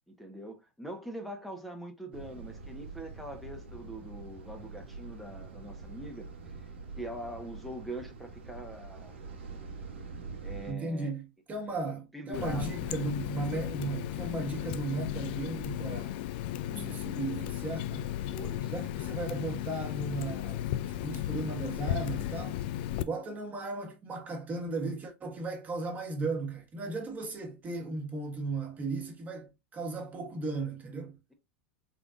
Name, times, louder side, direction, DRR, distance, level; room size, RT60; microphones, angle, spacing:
voice 1, 0.1-9.2 10.4-11.2 11.7-11.8 12.1-12.8 16.6-16.9 18.3-18.6, right 1 dB, ahead, 0.9 m, -43 dB
sound 1, 2.1-10.7, right 4 dB, 80° right, 0.9 m, -45 dB
voice 2, 10.7-16.2 16.8-18.1 18.7-22.6 23.0-31.1, right 3 dB, 25° right, 1.4 m, -36 dB
Water tap faucet, 12.3-23.0, left 12 dB, 60° left, 0.4 m, -35 dB
3.9 x 3.3 x 2.5 m
hypercardioid pair, 100°, 6 cm